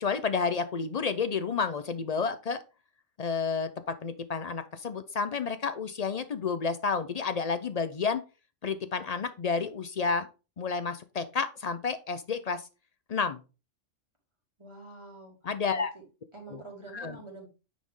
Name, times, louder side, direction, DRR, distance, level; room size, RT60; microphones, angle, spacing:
voice 1, 0.0-2.6 3.2-8.2 8.6-10.3 10.6-12.7 13.1-13.4 15.4-15.9 16.5-16.6 16.9-17.2, left 5 dB, 55° left, 11 dB, 0.4 m, -30 dB
voice 2, 14.6-15.3 16.3-17.5, right 3 dB, 20° right, -2 dB, 2.6 m, -46 dB
9.3 x 4.2 x 3.6 m, 0.31 s
omnidirectional pair, 1.3 m